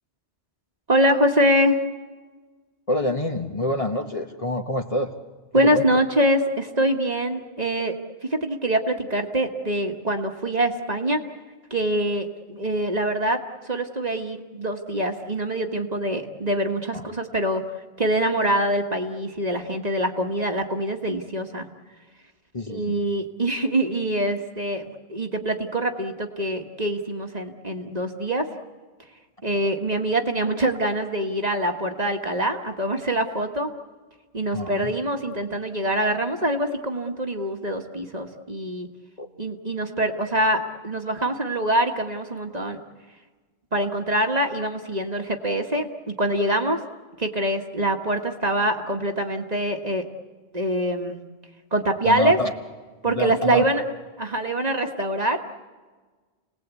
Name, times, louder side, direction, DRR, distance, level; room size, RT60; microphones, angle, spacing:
voice 1, 0.9-1.8 5.5-8.0 8.2-11.2 11.7-13.4 13.6-17.6 18.0-21.7 22.7-28.5 29.4-33.7 34.3-38.9 39.4-42.8 43.7-46.8 47.2-50.0 50.5-51.2 51.7-52.4 53.0-53.8 54.2-55.4, right 1 dB, 35° right, 4 dB, 1.6 m, -24 dB
voice 2, 2.9-5.1 5.5-6.0 16.9-17.1 22.5-23.0 34.5-34.9 39.2-39.3 52.0-52.5 53.0-53.6, left 1 dB, 30° left, 4 dB, 1.3 m, -27 dB
30.0 x 19.0 x 8.3 m, 1.4 s
omnidirectional pair, 1.2 m